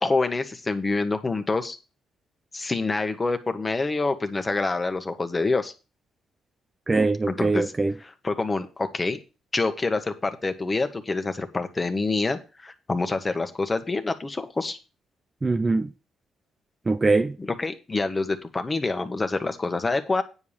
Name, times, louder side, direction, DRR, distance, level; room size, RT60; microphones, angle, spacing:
voice 1, 0.0-1.8 2.5-5.7 7.3-7.7 8.0-9.2 9.5-14.8 17.4-20.2, left 3 dB, 25° left, 1.5 m, -26 dB
voice 2, 6.9-7.9 15.4-15.9 16.9-17.4, right 3 dB, 25° right, 0.6 m, -22 dB
9.7 x 4.8 x 7.2 m
cardioid pair, 90°, 0 cm